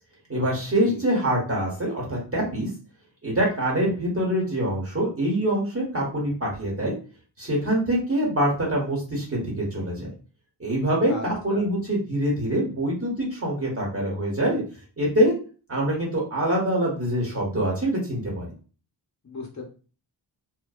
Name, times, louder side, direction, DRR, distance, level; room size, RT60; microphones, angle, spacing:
voice 1, 0.3-2.7 3.2-6.9 7.4-10.1 10.6-14.6 15.0-15.3 15.7-18.5, right 1 dB, 30° right, -3 dB, 1.1 m, -25 dB
voice 2, 19.2-19.7, left 3 dB, 40° left, 0 dB, 0.8 m, -36 dB
2.6 x 2.2 x 2.3 m, 0.37 s
wide cardioid pair, 95°, 45 cm